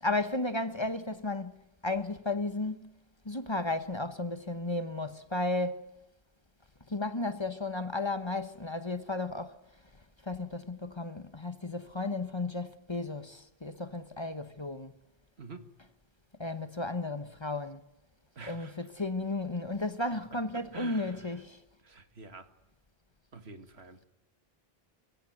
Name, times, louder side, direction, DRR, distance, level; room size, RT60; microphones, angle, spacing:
voice 1, 0.0-1.5 1.8-2.9 3.2-5.8 6.9-9.6 10.2-14.9 16.4-17.8 18.4-21.6, left 2 dB, 25° left, 1.2 m, -34 dB
voice 2, 15.4-15.7 18.4-18.9 20.1-21.4 21.8-22.5 23.3-24.1, right 4 dB, 80° right, 2.1 m, -48 dB
22.5 x 16.5 x 9.4 m
omnidirectional pair, 1.1 m